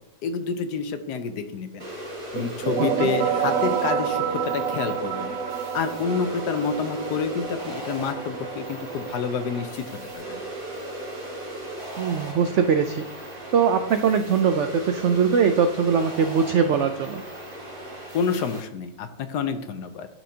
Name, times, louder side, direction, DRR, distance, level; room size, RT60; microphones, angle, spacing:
voice 1, 0.2-1.8 2.3-5.3 5.7-10.4 18.1-20.1, left 6 dB, 75° left, 8 dB, 1.3 m, -28 dB
sound 1, 1.8-18.6, right 1 dB, 30° right, 2.3 m, -37 dB
sound 2, 2.4-11.7, right 7 dB, 65° right, 1.0 m, -30 dB
voice 2, 12.0-13.0 13.5-17.2, right 6 dB, 80° right, 7 dB, 0.6 m, -21 dB
12.0 x 4.5 x 2.8 m, 0.82 s
omnidirectional pair, 1.8 m